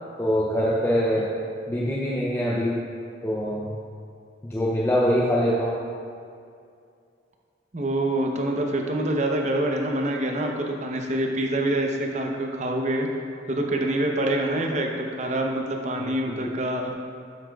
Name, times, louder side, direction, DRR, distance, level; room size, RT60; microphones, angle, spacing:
voice 1, 0.2-1.3 1.7-2.8 3.2-3.7 4.5-5.8 16.0-16.5, equal, 15° left, -5 dB, 0.5 m, -24 dB
voice 2, 7.7-13.1 13.5-16.9, right 1 dB, 35° right, 1 dB, 0.7 m, -26 dB
9.7 x 7.5 x 2.3 m, 2.4 s
head